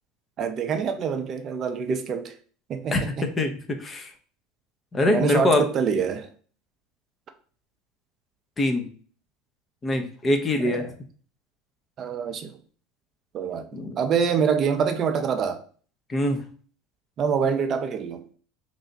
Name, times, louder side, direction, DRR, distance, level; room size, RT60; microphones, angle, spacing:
voice 1, 0.4-2.3 2.7-3.3 5.1-6.3 10.6-10.9 12.0-12.6 13.3-15.6 17.2-18.2, right 6 dB, 40° right, 0.5 m, -26 dB
voice 2, 3.4-4.1 4.9-5.6 8.6-8.9 9.8-10.9 13.7-14.0 16.1-16.4, left 1 dB, 25° left, 0.7 m, -23 dB
3.2 x 2.6 x 3.9 m
supercardioid pair, 115°, 0 cm